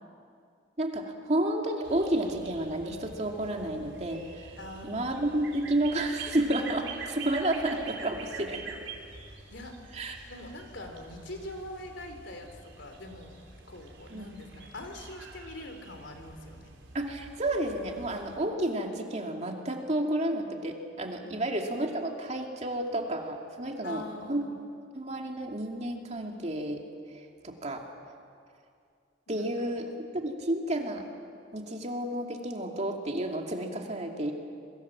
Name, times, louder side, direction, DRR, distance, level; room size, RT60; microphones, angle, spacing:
voice 1, 0.8-4.5 4.8-8.7 9.9-10.2 14.1-14.2 16.9-24.4 24.9-26.8 27.4-27.8 29.3-31.1 31.5-34.3, right 1 dB, 35° right, 2 dB, 2.5 m, -31 dB
sound 1, 1.8-18.4, right 4 dB, 70° right, 4.2 m, -46 dB
voice 2, 4.6-5.3 9.5-9.7 10.3-12.5 12.8-13.4 13.7-16.7 21.2-21.5 23.8-24.6 29.3-29.5, left 1 dB, 70° left, 5 dB, 3.5 m, -43 dB
27.5 x 23.5 x 7.5 m, 2.3 s
head